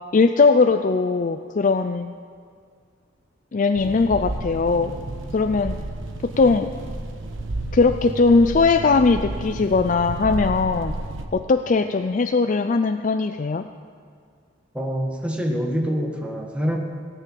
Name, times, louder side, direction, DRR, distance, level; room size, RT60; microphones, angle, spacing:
voice 1, 0.1-2.1 3.5-4.9 5.3-5.8 6.2-6.7 7.7-10.9 11.3-13.7, left 4 dB, 40° left, 8 dB, 0.4 m, -19 dB
sound 1, 3.8-11.3, right 2 dB, 75° right, 1.2 m, -32 dB
voice 2, 14.7-16.8, equal, 5° right, 0 dB, 1.6 m, -25 dB
17.5 x 9.1 x 7.4 m, 2.1 s
head